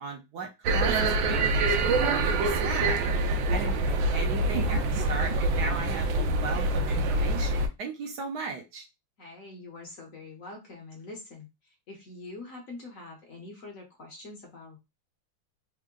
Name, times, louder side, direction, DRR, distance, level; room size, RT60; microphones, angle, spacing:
voice 1, 0.0-1.7 2.0-8.9, right 4 dB, 65° right, 1 dB, 1.2 m, -37 dB
sound 1, 0.6-7.7, right 2 dB, 85° right, 1.4 m, -25 dB
voice 2, 9.2-14.8, left 2 dB, 55° left, 0 dB, 1.1 m, -44 dB
3.6 x 2.1 x 3.6 m, 0.24 s
omnidirectional pair, 2.0 m